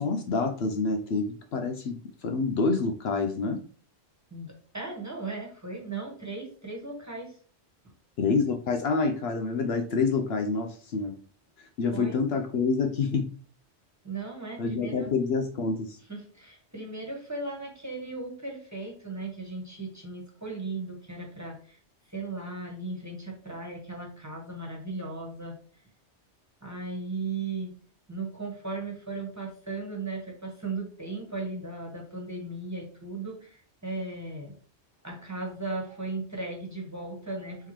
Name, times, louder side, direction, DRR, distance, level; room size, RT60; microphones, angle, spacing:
voice 1, 0.0-3.6 8.2-11.1 11.6-13.3 14.6-16.0, left 4 dB, 70° left, 5 dB, 0.8 m, -27 dB
voice 2, 4.3-7.4 11.9-12.1 14.0-15.1 16.0-21.8 22.0-25.6 26.6-27.7 28.1-34.5 35.0-37.7, right 3 dB, 15° right, -1 dB, 1.4 m, -37 dB
4.5 x 3.8 x 3.0 m, 0.42 s
omnidirectional pair, 1.2 m